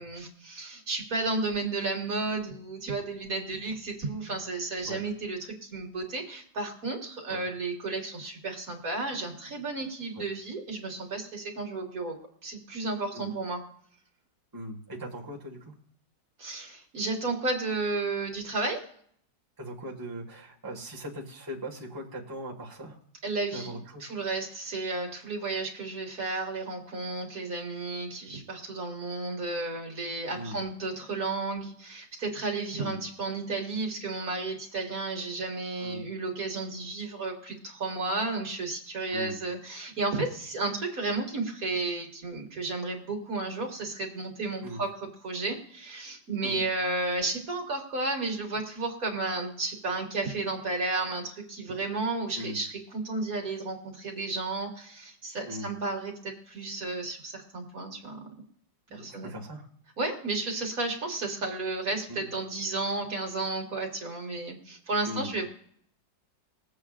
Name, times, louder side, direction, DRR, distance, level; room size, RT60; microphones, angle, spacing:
voice 1, 0.0-12.2 12.4-13.6 16.4-18.8 23.2-23.7 24.0-44.9 45.2-58.2 58.9-59.3 60.0-65.5, right 3 dB, 50° right, 1 dB, 2.2 m, -33 dB
voice 2, 14.5-15.7 19.6-23.0 23.5-24.1 30.3-30.6 32.8-33.0 35.8-36.0 39.1-39.4 44.6-44.8 46.4-46.6 52.3-52.6 55.5-55.7 58.9-59.7 62.1-62.3 65.1-65.3, equal, 10° right, -3 dB, 1.5 m, -39 dB
22.0 x 7.9 x 2.4 m, 0.62 s
omnidirectional pair, 1.9 m